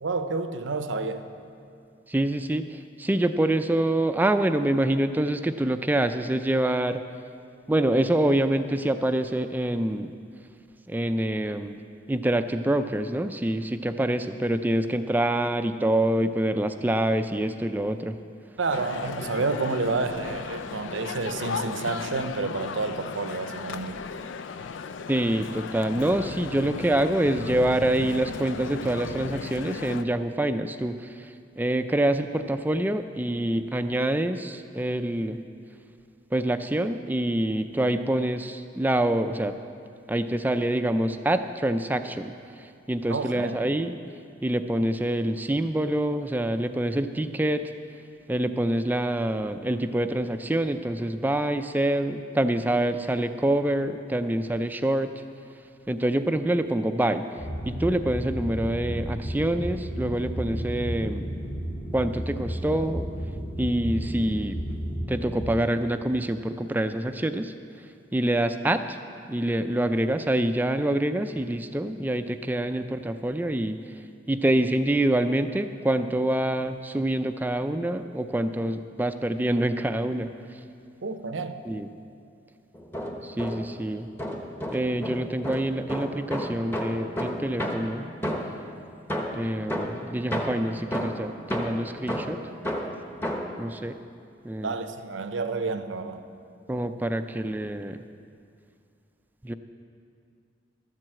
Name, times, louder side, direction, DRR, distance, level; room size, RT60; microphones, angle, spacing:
voice 1, 0.0-1.3 18.6-24.0 43.1-43.6 81.0-81.6 94.6-96.3, right 3 dB, 90° right, 9 dB, 0.7 m, -29 dB
voice 2, 2.1-7.0 7.7-10.1 10.9-11.8 12.1-18.2 25.1-35.4 36.3-39.5 40.1-42.3 42.6-43.9 44.4-47.7 48.3-55.1 55.9-57.2 57.6-61.3 61.9-63.1 63.6-64.6 65.1-67.5 68.1-69.0 69.3-73.8 74.3-80.3 81.7-81.9 83.2-84.1 84.7-88.1 89.3-92.4 93.6-94.0 94.4-94.7 96.7-98.0 99.4-99.5, right 1 dB, 10° right, 9 dB, 0.3 m, -26 dB
Male speech man speaking, 18.7-30.0, left 5 dB, 85° left, 0.4 m, -36 dB
sound 1, 57.4-65.5, equal, 35° left, 1.1 m, -33 dB
sound 2, 82.7-83.8 84.2-88.7 89.1-93.6, equal, 10° left, 0.9 m, -32 dB
13.0 x 7.6 x 7.5 m, 2.4 s
head